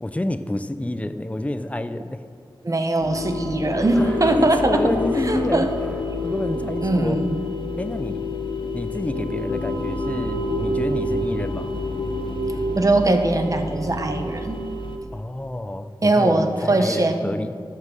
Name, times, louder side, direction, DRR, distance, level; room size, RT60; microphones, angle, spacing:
voice 1, 0.0-2.2 4.0-5.7 6.2-7.2 7.8-8.3 8.7-11.8 15.1-17.5, left 1 dB, 15° left, 10 dB, 0.6 m, -28 dB
voice 2, 2.6-4.9 5.2-5.7 6.8-7.5 12.8-14.7 16.0-17.3, right 2 dB, 40° right, 6 dB, 1.1 m, -21 dB
sound 1, 3.0-15.0, left 1 dB, 65° left, 1.1 m, -29 dB
sound 2, 3.8-14.6, left 4 dB, 20° right, 3.9 m, -33 dB
13.0 x 7.5 x 6.5 m, 2.2 s
wide cardioid pair, 75°, 9 cm